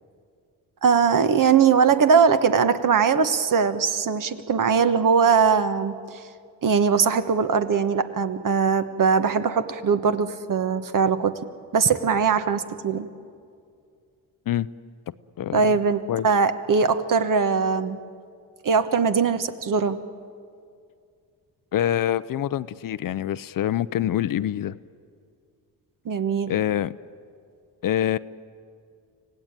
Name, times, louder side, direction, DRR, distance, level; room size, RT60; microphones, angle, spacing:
voice 1, 0.8-6.2 6.6-11.4 11.7-13.1 15.5-18.0 18.6-20.0 26.0-26.5, right 6 dB, 50° right, 10 dB, 1.3 m, -21 dB
voice 2, 21.7-24.8 26.5-27.0 27.8-28.2, left 11 dB, 55° left, 16 dB, 0.6 m, -25 dB
25.5 x 17.0 x 8.9 m, 2.3 s
cardioid pair, 70°, 40 cm